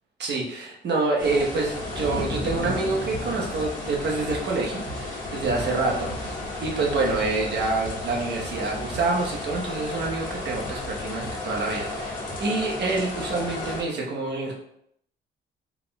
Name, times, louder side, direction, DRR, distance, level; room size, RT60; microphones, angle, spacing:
voice 1, 0.2-6.3 6.6-14.5, right 3 dB, 60° right, -1 dB, 1.1 m, -27 dB
sound 1, 1.2-13.8, left 2 dB, 45° left, 1.5 m, -33 dB
sound 2, 3.1-3.2 3.6-3.7 4.3-4.4 4.8-5.0 5.5-5.6 6.1-6.2 6.6-6.7 7.2-7.3 7.8-7.9 8.4-8.5 8.9-9.2 9.5-9.6 10.0-10.1 10.6-10.7 11.2-11.3 11.8-11.9 12.3-12.4, right 2 dB, 40° right, 1.3 m, -40 dB
4.7 x 3.6 x 2.3 m, 0.72 s
cardioid pair, 90°, 20 cm